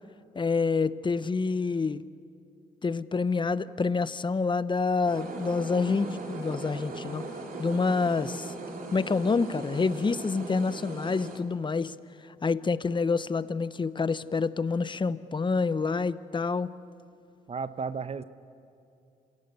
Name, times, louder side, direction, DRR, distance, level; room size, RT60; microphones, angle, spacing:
voice 1, 0.3-2.0 2.8-7.2 7.6-8.5 8.9-11.9 12.4-16.7, left 4 dB, 30° left, 16 dB, 0.8 m, -27 dB
sound 1, 5.1-11.4, right 3 dB, 60° right, 3.1 m, -39 dB
voice 2, 17.5-18.2, right 5 dB, 40° right, 13 dB, 1.0 m, -33 dB
27.0 x 17.5 x 8.2 m, 2.5 s
supercardioid pair, 60°, 16 cm